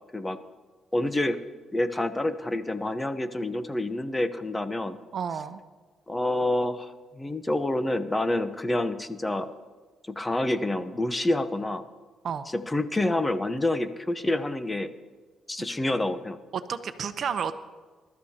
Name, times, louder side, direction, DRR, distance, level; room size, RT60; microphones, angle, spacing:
voice 1, 0.9-1.4 1.7-5.0 6.1-9.5 10.1-11.8 12.5-14.9 15.5-16.4, left 1 dB, 15° left, 10 dB, 0.9 m, -28 dB
voice 2, 5.1-5.6 12.2-12.5 16.5-17.5, right 7 dB, 55° right, 10 dB, 0.9 m, -31 dB
26.5 x 13.0 x 2.9 m, 1.4 s
cardioid pair, 90°, 0 cm